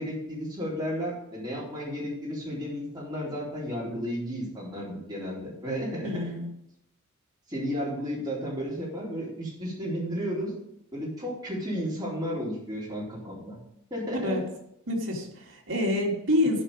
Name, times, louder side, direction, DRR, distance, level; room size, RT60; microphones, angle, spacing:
voice 1, 0.0-6.2 7.5-10.5 10.9-13.6 13.9-14.4, equal, 20° right, -6 dB, 3.9 m, -33 dB
voice 2, 6.0-6.5 14.2-14.4 14.9-16.6, left 1 dB, 70° right, -2 dB, 2.5 m, -27 dB
14.5 x 5.0 x 5.1 m, 0.77 s
head